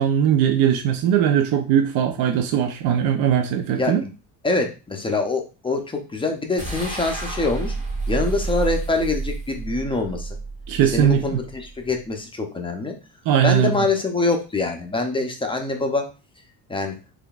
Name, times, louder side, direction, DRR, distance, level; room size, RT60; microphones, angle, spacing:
voice 1, 0.0-4.0 10.7-11.4 13.3-13.7, right 9 dB, 55° right, 0.6 m, -20 dB
voice 2, 3.8-4.1 4.4-7.7 8.1-10.4 10.9-13.0 13.4-16.1 16.7-16.9, left 3 dB, 15° left, 0.5 m, -24 dB
sound 1, 6.6-11.9, right 3 dB, 15° right, 1.0 m, -30 dB
3.7 x 3.4 x 2.3 m
cardioid pair, 130°, 41 cm